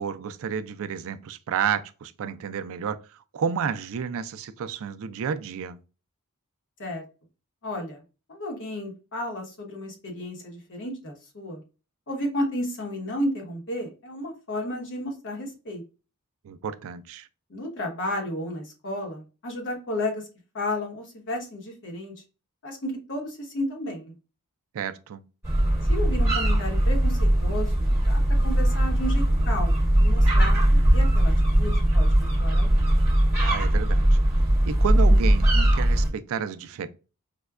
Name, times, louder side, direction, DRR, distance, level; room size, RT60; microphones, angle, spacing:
voice 1, 0.0-5.8 16.4-17.3 24.7-25.2 33.4-34.2 34.7-36.9, right 7 dB, 65° right, 0.4 m, -31 dB
voice 2, 7.6-8.0 8.3-11.6 12.1-15.8 17.5-20.3 20.5-22.1 22.6-24.1 25.9-30.6 30.9-32.9, left 1 dB, 55° left, 1.1 m, -33 dB
sound 1, 25.4-36.1, right 1 dB, 15° right, 1.1 m, -20 dB
5.0 x 2.2 x 2.3 m
head